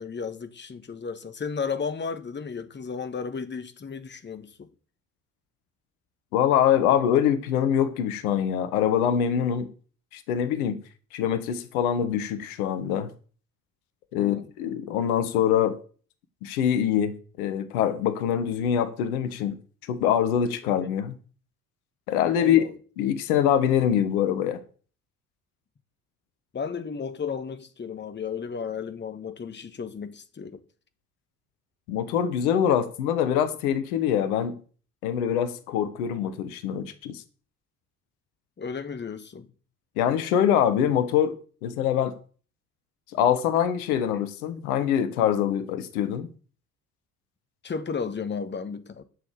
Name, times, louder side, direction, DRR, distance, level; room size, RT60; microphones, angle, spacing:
voice 1, 0.0-4.7 14.1-14.5 20.6-20.7 22.4-22.7 26.5-30.6 32.6-32.8 38.6-39.5 47.6-49.0, left 6 dB, 25° left, 1.4 m, -34 dB
voice 2, 6.3-9.7 10.1-10.8 11.1-13.1 14.1-15.8 16.4-19.5 19.9-21.2 22.1-22.6 23.0-24.6 31.9-34.6 35.0-37.2 40.0-42.1 43.1-46.3, left 9 dB, 65° left, 1.4 m, -24 dB
11.0 x 6.4 x 6.7 m
figure-of-eight pair, 50°, 47 cm